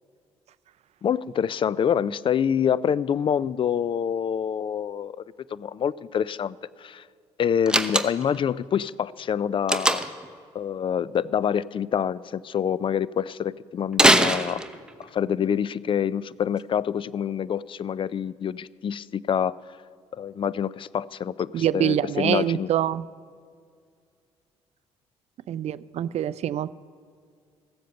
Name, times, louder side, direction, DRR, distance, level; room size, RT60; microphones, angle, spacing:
voice 1, 1.0-5.1 5.5-7.0 7.4-10.0 10.5-14.6 15.0-19.6 20.1-22.7, left 8 dB, 40° left, 21 dB, 0.4 m, -26 dB
Slam, 7.7-8.4 9.7-10.3 13.9-15.0, right 1 dB, 5° right, 0.8 m, -21 dB
voice 2, 21.5-23.1 25.5-26.7, right 11 dB, 55° right, 18 dB, 0.4 m, -25 dB
15.0 x 7.5 x 6.8 m, 2.2 s
hypercardioid pair, 55°, 14 cm